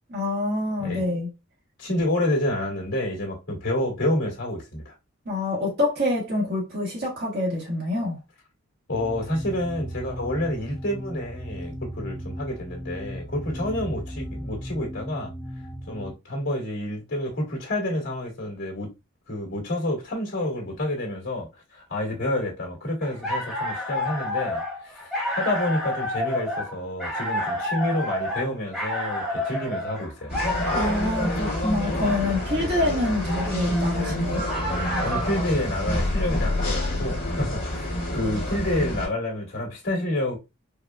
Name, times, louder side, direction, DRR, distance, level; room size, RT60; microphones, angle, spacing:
voice 1, 0.1-1.3 5.2-8.2 30.7-34.4, left 2 dB, 50° right, 1.1 m, -26 dB
voice 2, 1.8-4.9 8.9-15.3 15.9-18.9 19.3-21.5 21.7-25.0 25.3-30.3 32.5-32.7 35.0-40.4, left 1 dB, 65° left, 1.8 m, -29 dB
sound 1, 8.9-16.1, equal, 15° left, 0.4 m, -36 dB
sound 2, 23.0-35.5, left 1 dB, ahead, 0.9 m, -30 dB
sound 3, 30.3-39.1, left 1 dB, 45° left, 2.0 m, -27 dB
4.7 x 2.2 x 2.3 m
head